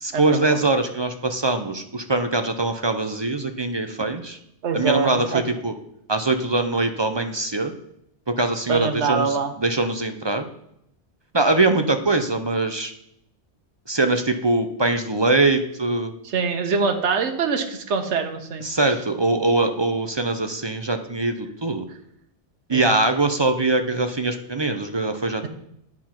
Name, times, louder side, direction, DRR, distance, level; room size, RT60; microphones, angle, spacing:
voice 1, 0.0-4.4 4.7-5.7 6.1-7.7 8.3-10.4 11.3-12.9 13.9-16.1 18.6-21.9 22.7-25.5, right 2 dB, 30° right, 7 dB, 0.5 m, -22 dB
voice 2, 4.6-5.4 8.7-9.5 16.2-18.7 22.7-23.0, right 5 dB, 85° right, 6 dB, 1.2 m, -24 dB
9.7 x 4.5 x 5.8 m, 0.76 s
omnidirectional pair, 1.2 m